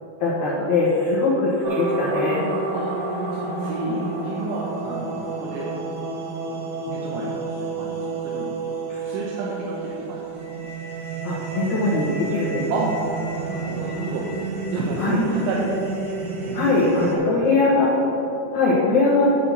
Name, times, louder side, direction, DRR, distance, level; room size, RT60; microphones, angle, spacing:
voice 1, 0.2-2.4 11.2-12.7 15.0-15.2 16.5-17.9 18.5-19.3, left 3 dB, 75° left, -6 dB, 1.7 m, -21 dB
sound 1, 1.6-17.2, right 3 dB, 65° right, 2.2 m, -30 dB
voice 2, 3.3-5.7 6.9-7.3 7.6-8.5 9.0-10.2 10.6-10.7 12.7-12.9 13.3-14.3 14.7-15.7 16.4-16.7 17.0-17.4, right 3 dB, 80° right, -5 dB, 3.3 m, -30 dB
11.5 x 4.3 x 7.1 m, 3.0 s
omnidirectional pair, 5.3 m